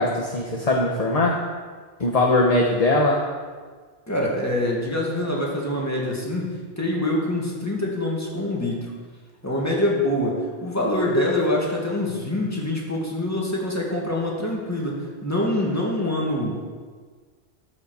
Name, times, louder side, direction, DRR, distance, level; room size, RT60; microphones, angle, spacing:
voice 1, 0.0-1.4 2.0-3.2, left 2 dB, 35° left, 0 dB, 1.1 m, -20 dB
voice 2, 4.1-6.4 6.8-8.9 9.4-16.7, left 1 dB, 15° left, -3 dB, 2.4 m, -25 dB
14.0 x 5.8 x 6.6 m, 1.5 s
omnidirectional pair, 1.1 m